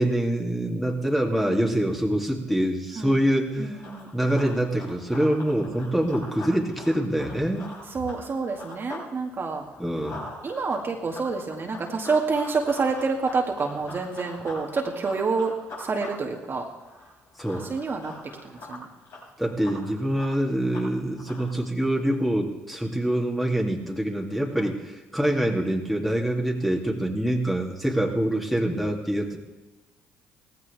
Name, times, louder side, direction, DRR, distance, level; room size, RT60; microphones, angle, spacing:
voice 1, 0.0-3.8 4.1-7.7 9.8-10.3 17.4-17.7 19.4-29.4, right 1 dB, ahead, 0 dB, 2.6 m, -25 dB
Run, 3.6-9.1 9.4-21.6, left 2 dB, 60° left, 6.3 m, -43 dB
voice 2, 3.6-4.3 7.9-9.7 10.4-16.7 17.5-18.1 18.4-18.9 24.5-24.7, right 4 dB, 40° right, 1 dB, 2.1 m, -28 dB
18.0 x 15.0 x 3.5 m, 1.1 s
hypercardioid pair, 60°, 6 cm